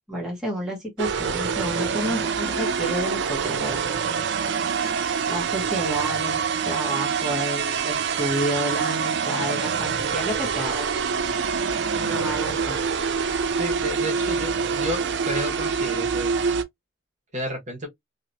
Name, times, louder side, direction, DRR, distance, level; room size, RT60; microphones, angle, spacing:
voice 1, 0.1-3.8 5.3-6.4 6.6-10.9 11.9-12.8, right 1 dB, 5° right, 1.1 m, -30 dB
sound 1, 1.0-16.6, right 6 dB, 55° right, 0.4 m, -25 dB
voice 2, 13.6-16.3 17.3-17.9, equal, 35° right, 1.2 m, -31 dB
2.9 x 2.9 x 2.5 m
head